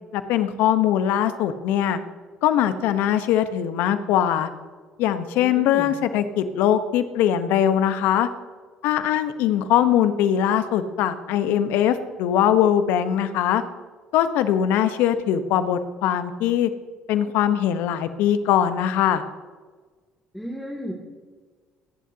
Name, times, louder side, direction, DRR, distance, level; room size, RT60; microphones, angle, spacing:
voice 1, 0.1-2.0 2.4-4.5 5.0-8.3 8.8-13.6 14.1-16.7 17.1-19.2, left 10 dB, 70° left, 11 dB, 1.1 m, -21 dB
voice 2, 5.4-5.9 20.3-20.9, equal, ahead, -2 dB, 2.7 m, -33 dB
26.5 x 11.0 x 2.9 m, 1.4 s
hypercardioid pair, 65°, 3 cm